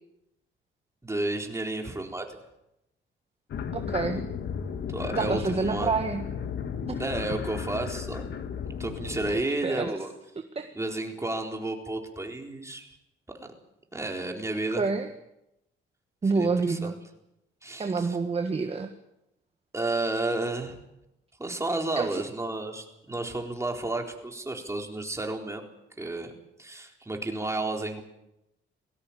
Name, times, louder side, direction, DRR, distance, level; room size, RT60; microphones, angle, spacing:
voice 1, 1.0-2.4 4.9-5.9 7.0-8.3 8.8-10.1 10.7-13.0 13.3-13.5 13.9-14.8 16.3-16.9 17.6-18.2 19.7-20.8 21.4-25.6 26.0-26.3 26.6-28.0, right 2 dB, 15° right, 2 dB, 4.0 m, -32 dB
sound 1, 3.5-9.4, left 7 dB, 65° left, 2.0 m, -34 dB
voice 2, 3.7-4.2 5.1-6.2 6.9-7.0 9.3-9.4 9.6-9.9 10.5-10.7 14.8-15.1 16.2-16.9 17.8-18.9 22.0-22.2, right 4 dB, 30° right, 7 dB, 1.6 m, -28 dB
20.0 x 16.5 x 8.7 m, 0.87 s
cardioid pair, 90°, 20 cm